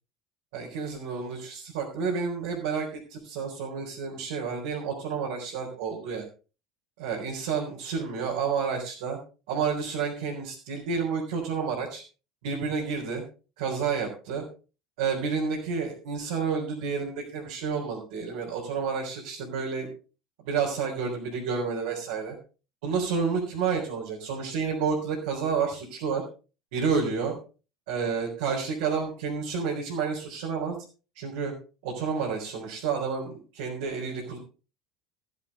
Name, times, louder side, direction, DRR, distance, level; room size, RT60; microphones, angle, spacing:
voice 1, 0.5-6.2 7.0-9.2 9.5-12.0 12.4-13.2 13.6-14.4 15.0-19.9 20.4-22.4 22.8-26.2 26.7-27.4 27.9-30.7 31.2-31.5 31.8-34.4, right 5 dB, 65° right, -3 dB, 3.9 m, -30 dB
15.0 x 11.0 x 3.6 m, 0.35 s
figure-of-eight pair, 70°, 0 cm